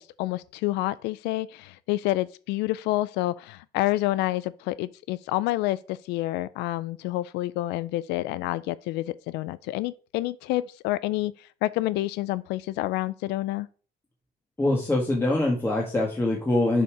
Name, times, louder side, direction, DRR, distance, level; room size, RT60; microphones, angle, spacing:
voice 1, 0.2-13.7, left 17 dB, 90° left, 0.4 m, -28 dB
voice 2, 14.6-16.8, left 2 dB, 15° left, 1.6 m, -24 dB
6.7 x 4.4 x 4.8 m
cardioid pair, 110°, 17 cm